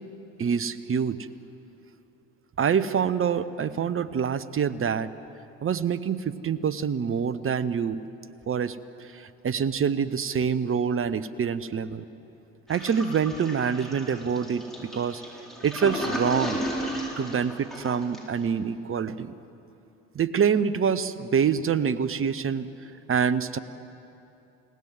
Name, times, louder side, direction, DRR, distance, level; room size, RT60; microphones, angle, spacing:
voice 1, 0.4-1.3 2.6-5.1 5.6-8.0 8.5-12.1 12.7-15.2 15.6-16.6 17.2-19.3 20.1-23.6, right 7 dB, 35° right, 14 dB, 1.1 m, -26 dB
Toilet flush, 12.7-18.4, equal, ahead, 6.5 m, -34 dB
30.0 x 18.0 x 7.7 m, 2.8 s
figure-of-eight pair, 55°, 39 cm